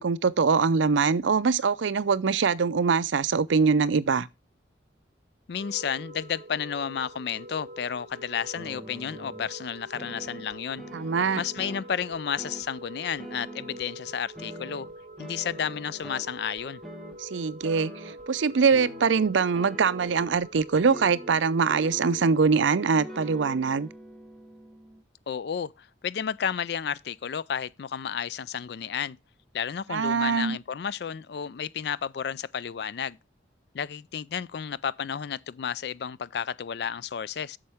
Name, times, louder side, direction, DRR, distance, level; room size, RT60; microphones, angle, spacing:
voice 1, 0.0-4.3 10.9-11.4 17.2-23.9 29.9-30.6, right 5 dB, 80° right, 0.5 m, -23 dB
voice 2, 5.5-10.8 11.4-14.9 15.2-16.8 25.3-29.2 29.5-33.2 33.7-37.6, left 7 dB, 60° left, 0.4 m, -32 dB
sound 1, 5.6-23.6, right 1 dB, 45° right, 2.8 m, -45 dB
sound 2, 8.5-9.5 9.9-12.7 13.2-13.9 14.3-16.3 16.6-17.2 17.6-18.3 18.7-20.4 20.9-22.5 22.9-25.0, equal, ahead, 1.4 m, -44 dB
8.7 x 6.4 x 3.5 m
head